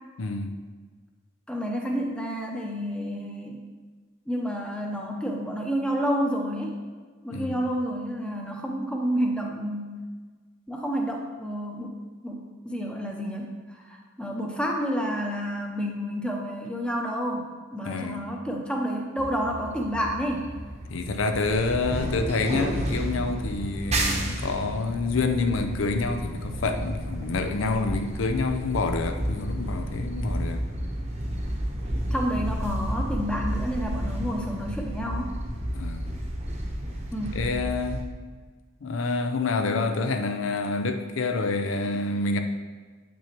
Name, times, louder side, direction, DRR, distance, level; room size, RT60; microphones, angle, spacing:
voice 1, 0.2-0.6 7.3-7.6 17.9-18.3 20.9-30.6 35.7-36.2 37.3-38.1 38.8-42.4, left 3 dB, 85° left, 6 dB, 0.5 m, -27 dB
voice 2, 1.5-3.6 4.3-6.8 7.2-10.0 10.7-11.9 12.2-20.5 32.1-35.3 37.1-37.4, equal, 5° left, 0 dB, 0.7 m, -30 dB
sound 1, 19.2-38.0, equal, 35° right, 0.9 m, -31 dB
8.3 x 6.0 x 3.0 m, 1.5 s
head